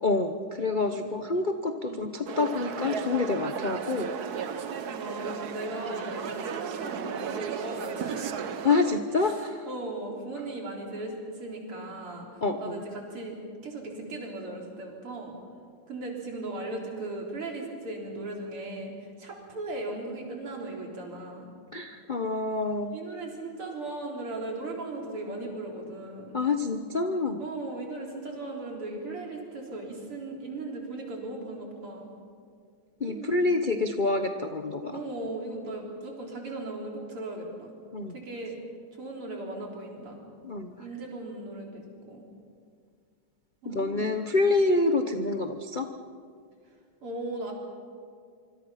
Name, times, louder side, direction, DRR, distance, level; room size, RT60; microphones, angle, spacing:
voice 1, 0.0-4.1 8.6-9.6 12.4-12.8 21.7-22.9 26.3-27.4 33.0-35.0 37.9-38.1 40.4-40.7 43.6-45.9, left 3 dB, 55° left, 6 dB, 0.5 m, -27 dB
voice 2, 0.7-1.1 1.9-2.0 4.4-8.4 9.2-12.3 12.6-13.4 13.6-15.3 15.9-18.9 19.2-21.5 22.9-26.4 27.4-32.1 33.0-33.5 34.9-37.7 38.1-38.6 39.0-40.2 40.8-42.2 43.6-44.2 47.0-47.5, right 2 dB, 85° right, 0 dB, 4.7 m, -37 dB
sound 1, 2.3-9.0, right 7 dB, 55° right, 1.3 m, -34 dB
25.5 x 25.0 x 5.7 m, 2.2 s
omnidirectional pair, 2.4 m